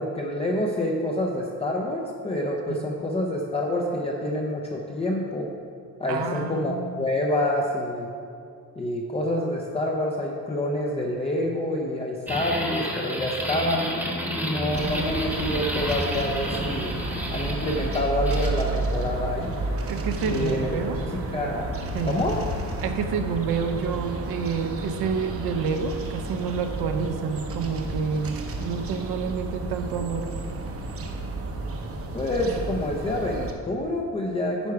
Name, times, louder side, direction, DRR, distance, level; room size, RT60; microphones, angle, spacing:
voice 1, 0.0-5.5 6.0-8.1 8.8-16.9 17.3-19.5 20.2-21.7 22.1-22.4 32.1-34.7, left 1 dB, 15° left, -2 dB, 0.5 m, -27 dB
voice 2, 6.1-7.0 19.9-21.0 21.9-22.2 22.8-30.3, right 6 dB, 75° right, 6 dB, 0.9 m, -29 dB
sound 1, 12.3-18.5, equal, 5° right, 1.0 m, -31 dB
sound 2, 14.7-33.5, right 2 dB, 35° right, 0.8 m, -32 dB
sound 3, 21.4-24.1, left 3 dB, 65° left, 1.7 m, -37 dB
9.5 x 5.8 x 4.7 m, 2.4 s
cardioid pair, 170°, 39 cm